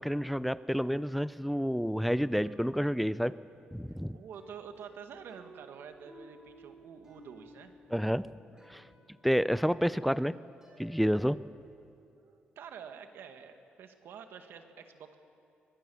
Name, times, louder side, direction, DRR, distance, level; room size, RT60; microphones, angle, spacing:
voice 1, 0.0-3.4 3.7-4.2 7.9-8.3 8.7-8.8 9.2-10.4 10.8-11.4, equal, ahead, 16 dB, 0.5 m, -29 dB
sound 1, 1.8-11.7, right 1 dB, 15° right, 7.1 m, -58 dB
voice 2, 4.1-7.7 12.1-15.2, right 7 dB, 75° right, 6 dB, 1.8 m, -48 dB
23.0 x 21.0 x 7.1 m, 2.7 s
cardioid pair, 120°, 4 cm